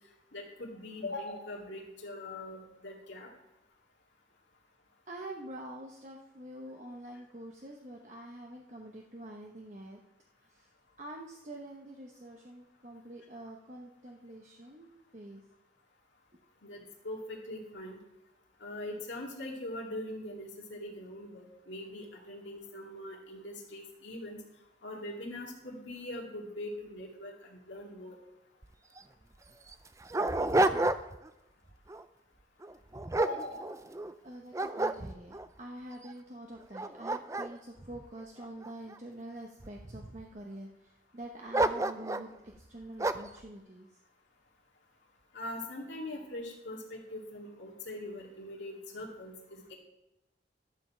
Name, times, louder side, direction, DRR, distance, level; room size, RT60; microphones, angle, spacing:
voice 1, 0.3-3.3 16.6-16.8 17.0-18.0 18.6-24.4 24.8-28.2 33.2-33.6 45.3-49.8, left 1 dB, 80° left, -2 dB, 2.2 m, -42 dB
voice 2, 5.1-10.0 10.4-10.7 11.0-15.4 30.7-30.9 34.2-44.0, right 1 dB, 40° right, 0 dB, 1.0 m, -46 dB
Dog, 28.6-28.7 29.0-29.1 29.7-31.3 31.7-32.0 32.6-34.1 34.5-35.5 36.1-36.2 36.6-39.0 39.6-40.2 41.5-42.3 43.0-43.4, right 2 dB, 15° right, 0.4 m, -31 dB
12.0 x 5.3 x 7.3 m, 0.96 s
head